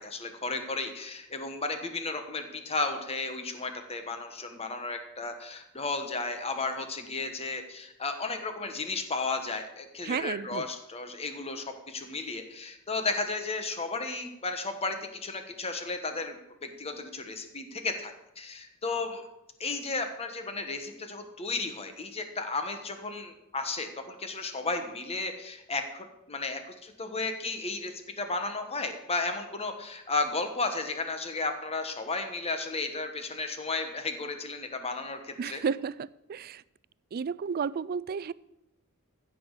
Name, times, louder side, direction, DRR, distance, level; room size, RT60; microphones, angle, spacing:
voice 1, 0.0-19.2 19.6-35.6, left 3 dB, 30° left, 6 dB, 1.2 m, -34 dB
voice 2, 10.0-10.7 35.4-36.6 37.1-38.3, right 6 dB, 45° right, 19 dB, 0.3 m, -32 dB
15.0 x 6.2 x 6.5 m, 0.86 s
head